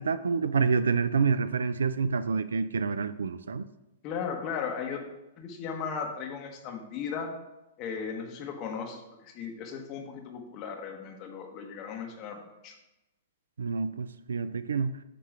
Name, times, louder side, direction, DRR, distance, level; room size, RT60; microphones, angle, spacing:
voice 1, 0.0-3.7 13.6-15.0, right 5 dB, 80° right, 14 dB, 0.3 m, -28 dB
voice 2, 4.0-5.0 5.4-7.3 7.8-12.7, left 6 dB, 40° left, 3 dB, 1.2 m, -36 dB
7.9 x 3.0 x 6.0 m, 0.98 s
hypercardioid pair, 115°, 0 cm